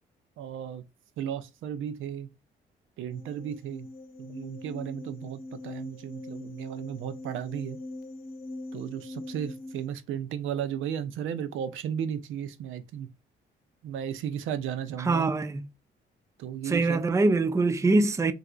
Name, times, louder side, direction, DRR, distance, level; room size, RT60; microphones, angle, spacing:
voice 1, 0.4-0.8 1.2-2.3 3.0-3.9 4.2-7.8 8.7-13.1 13.8-15.3 16.4-17.0, right 9 dB, 85° right, 0.5 m, -34 dB
sound 1, 3.1-9.9, left 2 dB, 45° left, 0.8 m, -42 dB
voice 2, 15.0-15.7 16.7-18.3, right 3 dB, 15° right, 0.4 m, -24 dB
4.1 x 2.5 x 2.3 m
cardioid pair, 90°, 20 cm